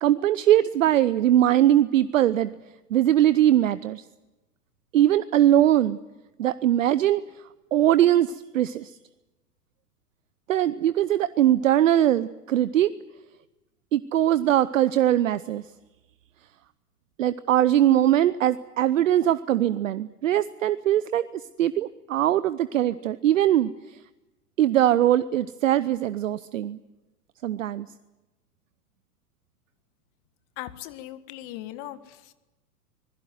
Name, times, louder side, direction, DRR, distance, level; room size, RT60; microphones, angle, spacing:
voice 1, 0.0-2.5 2.9-4.0 4.9-6.0 6.4-7.2 7.7-9.0 10.5-12.9 13.9-15.6 17.2-23.7 24.6-26.8 27.4-27.9, right 12 dB, 55° right, 15 dB, 0.9 m, -21 dB
voice 2, 30.6-32.3, left 14 dB, 35° left, 12 dB, 1.7 m, -39 dB
26.0 x 20.5 x 7.8 m, 1.0 s
figure-of-eight pair, 100°, 46 cm